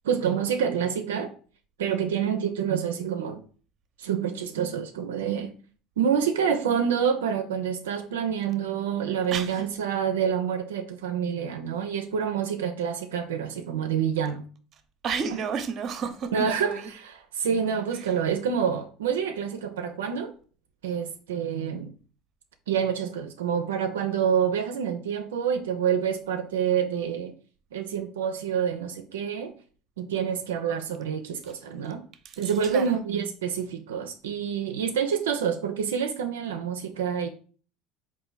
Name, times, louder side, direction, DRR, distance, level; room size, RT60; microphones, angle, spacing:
voice 1, 0.0-1.3 1.8-3.4 4.0-5.5 6.0-14.4 16.3-20.3 20.8-21.9 22.7-27.3 27.7-29.5 30.0-32.0 32.4-37.3, right 7 dB, 90° right, 0.4 m, -27 dB
voice 2, 9.3-9.6 15.0-16.9 17.9-18.1 31.4-31.5 32.2-33.0, right 6 dB, 50° right, 0.6 m, -32 dB
3.9 x 2.5 x 3.9 m
hypercardioid pair, 85°, 0 cm